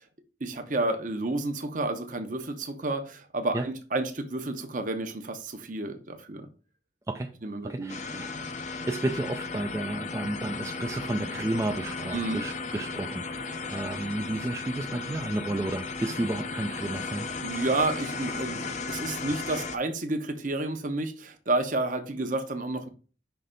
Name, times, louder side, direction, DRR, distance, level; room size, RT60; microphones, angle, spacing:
voice 1, 0.4-6.5 7.4-8.3 12.1-12.5 17.4-22.9, right 2 dB, 45° right, 0.9 m, -30 dB
voice 2, 7.6-8.5 8.8-17.3, right 2 dB, 15° right, 0.3 m, -32 dB
sound 1, 7.9-19.8, left 4 dB, 40° left, 0.5 m, -35 dB
5.7 x 3.3 x 5.1 m
head